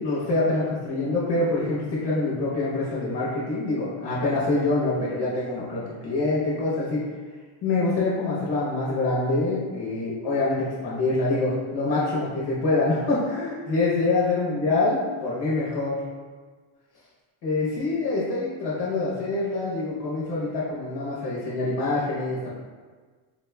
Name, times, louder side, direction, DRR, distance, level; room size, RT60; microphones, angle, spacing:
voice 1, 0.0-7.0 7.6-16.0 17.4-22.5, left 2 dB, 55° left, -7 dB, 0.9 m, -25 dB
4.1 x 2.9 x 2.2 m, 1.5 s
cardioid pair, 150°, 48 cm